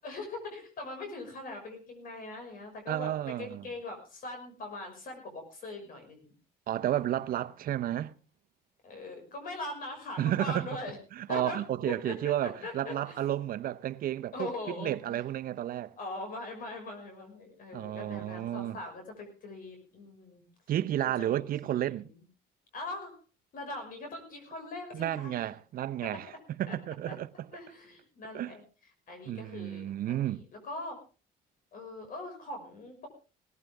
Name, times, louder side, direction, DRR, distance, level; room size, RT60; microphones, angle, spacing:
voice 1, 0.0-6.3 8.8-11.0 11.3-13.2 14.3-15.2 16.0-20.4 21.2-22.2 22.7-23.2 23.5-25.4 26.0-26.4 26.7-26.8 27.1-27.2 27.5-28.6 29.1-31.0 31.7-33.1, left 2 dB, 55° left, 6.0 m, -41 dB
voice 2, 2.9-3.6 6.7-8.1 10.2-10.7 11.2-14.5 14.8-15.9 17.7-18.8 20.7-22.1 24.9-27.5 28.3-28.5 29.3-30.4, right 12 dB, 60° right, 0.9 m, -32 dB
18.5 x 14.5 x 3.6 m
cardioid pair, 110°, 17 cm